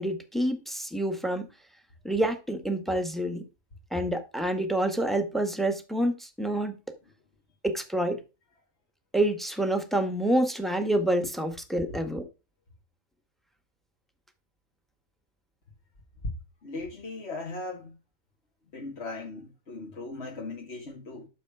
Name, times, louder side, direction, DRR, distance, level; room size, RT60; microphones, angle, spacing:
voice 1, 0.0-1.5 2.0-3.4 3.9-6.8 7.6-8.2 9.1-12.2, right 1 dB, ahead, 1.7 m, -27 dB
voice 2, 16.6-18.0 18.7-21.3, left 3 dB, 50° left, 2.3 m, -38 dB
12.5 x 6.9 x 5.0 m
omnidirectional pair, 1.4 m